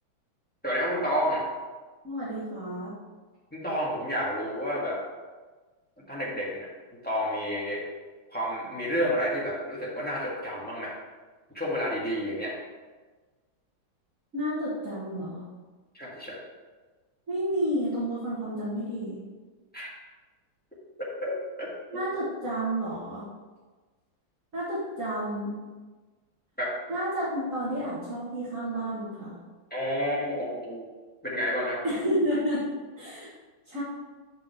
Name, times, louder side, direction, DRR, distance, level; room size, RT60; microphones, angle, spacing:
voice 1, 0.6-1.4 3.5-5.0 6.1-6.7 7.0-7.8 8.3-10.9 11.5-12.5 15.9-16.4 19.7-19.9 21.0-21.3 21.6-22.0 26.6-26.7 29.7-30.8 31.2-31.8, equal, 5° left, -6 dB, 1.6 m, -30 dB
voice 2, 2.0-2.9 14.3-15.5 17.3-19.2 21.9-23.2 24.5-25.6 26.9-29.4 31.8-32.7 33.0-33.3 33.7-33.8, equal, 40° right, -8 dB, 2.0 m, -30 dB
6.1 x 4.6 x 6.2 m, 1.3 s
omnidirectional pair, 2.3 m